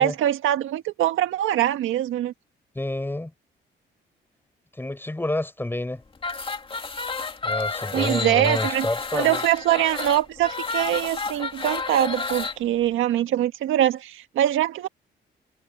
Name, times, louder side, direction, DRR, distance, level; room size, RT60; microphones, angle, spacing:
voice 1, 0.0-2.3 7.9-8.9 9.1-14.9, right 12 dB, 85° right, 1.7 m, -23 dB
voice 2, 2.7-3.3 4.8-6.0 7.4-9.4, left 1 dB, 10° left, 5.7 m, -28 dB
sound 1, 6.2-12.6, left 4 dB, 25° left, 2.5 m, -30 dB
cardioid pair, 90°, 20 cm